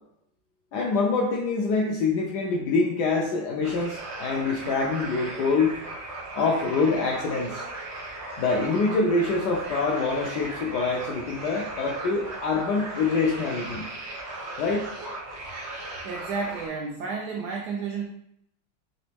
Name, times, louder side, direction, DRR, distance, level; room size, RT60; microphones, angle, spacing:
voice 1, 0.7-5.7 6.3-7.6 8.4-13.9 14.6-14.9, left 4 dB, 75° left, -1 dB, 1.0 m, -25 dB
sound 1, 3.6-16.7, right 2 dB, 55° right, 0.5 m, -37 dB
voice 2, 16.0-18.0, right 5 dB, 80° right, 0 dB, 0.9 m, -31 dB
4.1 x 3.0 x 3.3 m, 0.76 s
omnidirectional pair, 2.3 m